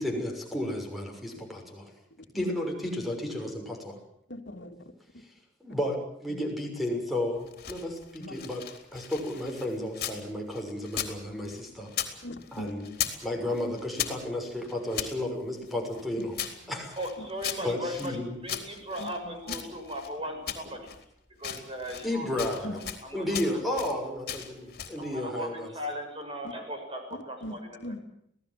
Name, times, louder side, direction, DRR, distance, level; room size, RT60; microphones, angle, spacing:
voice 1, 0.0-1.9 2.3-4.0 5.6-8.6 8.9-11.9 12.5-12.9 13.2-16.9 17.6-18.4 22.0-22.8 23.1-25.7, left 1 dB, ahead, 2 dB, 6.4 m, -33 dB
voice 2, 4.3-4.7 8.2-8.3 12.2-12.7 19.0-19.3 22.6-22.7 27.4-27.5 27.8-28.0, left 1 dB, 80° left, 5 dB, 2.8 m, -39 dB
sound 1, 7.4-10.2 10.5-12.2 12.4-13.3 13.5-15.1 15.7-18.1 18.5-20.1 20.5-21.0 21.4-22.1 22.4-23.0 23.3-24.0 24.3-25.0, left 9 dB, 55° left, 3.8 m, -37 dB
voice 3, 17.0-18.1 18.4-20.9 21.4-22.3 23.0-23.3 23.7-23.8 25.0-25.5 25.7-27.8, equal, 30° right, 4 dB, 7.0 m, -37 dB
27.0 x 18.0 x 7.6 m, 0.73 s
head